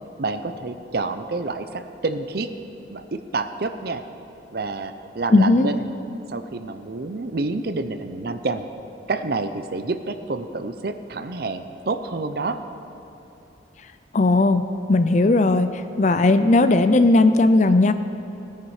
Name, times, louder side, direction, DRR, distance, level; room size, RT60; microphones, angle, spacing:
voice 1, 0.2-2.5 2.9-4.0 4.5-5.9 6.3-8.6 9.1-12.6, right 3 dB, 55° right, 9 dB, 0.6 m, -28 dB
voice 2, 5.3-5.7 14.1-14.6 14.9-17.9, left 2 dB, 40° left, 11 dB, 0.5 m, -17 dB
17.5 x 9.5 x 4.9 m, 2.8 s
head